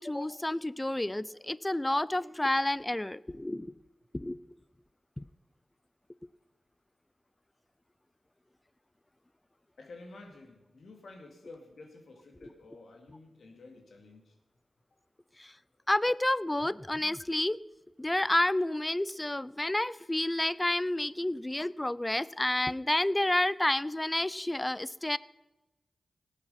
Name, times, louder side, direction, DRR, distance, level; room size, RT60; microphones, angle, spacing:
voice 1, 0.0-3.7 4.1-4.4 5.2-5.3 15.4-15.5 15.9-17.6 18.0-25.2, left 1 dB, 20° left, 19 dB, 0.4 m, -30 dB
voice 2, 9.8-14.3, left 2 dB, 80° left, 3 dB, 2.4 m, -51 dB
18.0 x 8.9 x 5.6 m, 1.1 s
cardioid pair, 55°, 0 cm